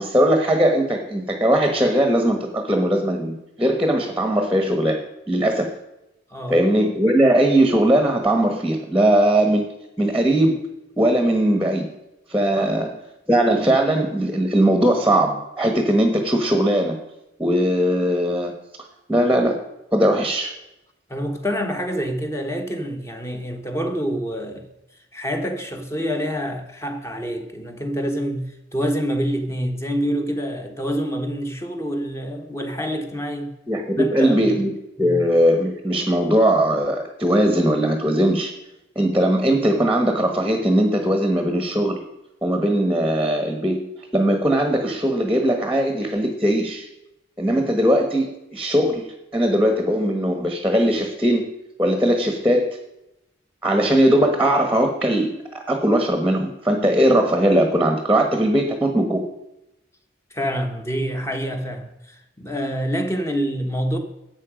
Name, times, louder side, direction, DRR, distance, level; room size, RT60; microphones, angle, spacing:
voice 1, 0.0-5.7 6.5-9.7 10.0-10.6 11.0-11.9 12.3-12.9 13.3-17.0 17.4-18.5 19.1-19.6 19.9-20.5 33.7-34.7 35.0-38.5 38.9-42.0 42.4-43.9 44.1-46.9 47.4-51.4 51.8-52.8 53.6-59.2, right 1 dB, 5° right, 1.2 m, -19 dB
voice 2, 21.1-24.7 25.1-33.5 34.0-34.6 35.0-35.2 60.3-64.0, equal, 15° left, 1.2 m, -27 dB
12.0 x 8.1 x 5.1 m
head